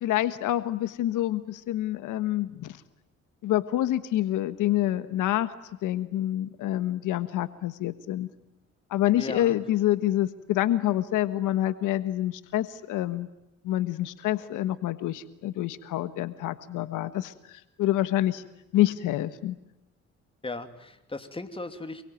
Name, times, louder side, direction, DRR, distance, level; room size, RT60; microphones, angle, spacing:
voice 1, 0.0-2.8 3.4-5.5 5.8-8.3 8.9-13.3 13.6-18.4 18.7-19.5, left 14 dB, 90° left, 13 dB, 1.4 m, -27 dB
voice 2, 9.2-9.6 20.4-22.0, left 2 dB, 20° left, 8 dB, 2.9 m, -36 dB
27.0 x 23.0 x 9.2 m, 0.90 s
cardioid pair, 90°, 30 cm